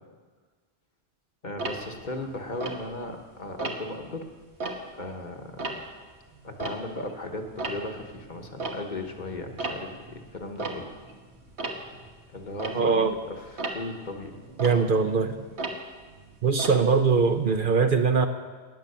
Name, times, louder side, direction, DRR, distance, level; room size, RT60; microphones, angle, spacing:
voice 1, 1.4-4.3 5.0-5.8 6.4-10.9 12.3-12.9 13.3-14.3, left 2 dB, 45° left, 3 dB, 1.3 m, -37 dB
Tick-tock, 1.6-3.2 3.6-4.0 4.4-7.2 7.4-17.6, right 2 dB, 75° right, 1.6 m, -37 dB
voice 2, 12.7-13.1 14.6-15.4 16.4-18.3, right 5 dB, 55° right, 6 dB, 0.9 m, -22 dB
18.5 x 7.4 x 6.8 m, 1.4 s
omnidirectional pair, 1.1 m